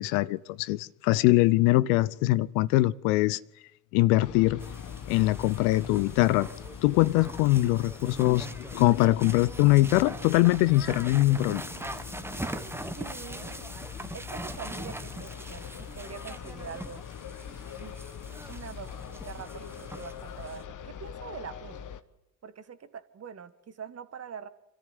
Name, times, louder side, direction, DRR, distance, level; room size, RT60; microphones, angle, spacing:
voice 1, 0.0-3.4 3.9-4.6 5.1-6.5 6.8-8.5 8.7-11.6, left 18 dB, 65° left, 0.7 m, -22 dB
sound 1, 4.2-22.0, left 8 dB, 45° left, 1.4 m, -42 dB
sound 2, 4.6-20.6, right 1 dB, 5° right, 1.3 m, -42 dB
voice 2, 12.9-13.7 14.1-17.0 17.8-18.0 18.5-21.9 22.4-24.5, right 7 dB, 35° right, 1.7 m, -44 dB
26.0 x 14.0 x 8.2 m
hypercardioid pair, 60°, 42 cm